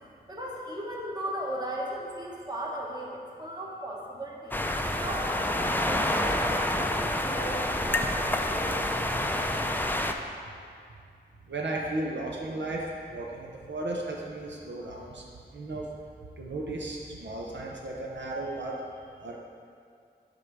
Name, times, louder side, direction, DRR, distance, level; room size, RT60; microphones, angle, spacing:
voice 1, 0.3-4.6 5.0-8.7, right 1 dB, 20° right, -3 dB, 1.4 m, -37 dB
sound 1, 4.5-10.1, left 1 dB, 10° left, 0.4 m, -28 dB
voice 2, 11.5-12.8 13.1-15.2 15.5-15.9 16.4-18.8 19.2-19.4, right 2 dB, 85° right, -2 dB, 0.8 m, -35 dB
7.8 x 3.8 x 6.0 m, 2.3 s
wide cardioid pair, 55°, 18 cm